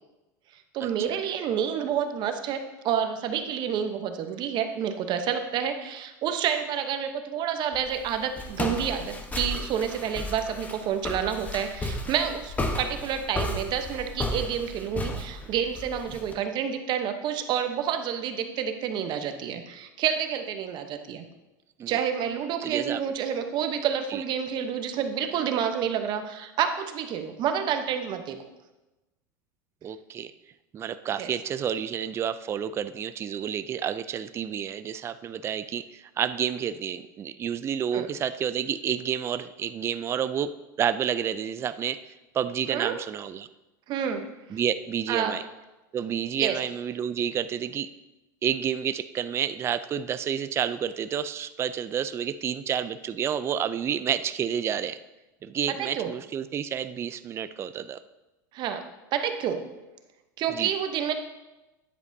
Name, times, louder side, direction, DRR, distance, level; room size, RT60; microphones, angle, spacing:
voice 1, 0.7-21.2 21.9-28.4 31.2-31.3 37.9-38.1 42.7-42.9 43.9-44.3 45.1-45.4 46.4-46.6 55.7-56.1 58.5-58.8 59.1-59.7 60.4-61.1, right 8 dB, 45° right, 7 dB, 0.9 m, -29 dB
Walk footsteps, 7.7-16.3, left 1 dB, 15° left, 1.0 m, -33 dB
voice 2, 22.6-23.0 24.1-24.2 29.8-30.3 30.7-40.5 40.8-43.5 44.5-45.4 45.9-47.9 48.4-55.0 55.4-58.0 60.5-60.7, right 8 dB, 25° right, 12 dB, 0.3 m, -30 dB
9.8 x 8.0 x 2.7 m, 1.0 s
supercardioid pair, 115°, 11 cm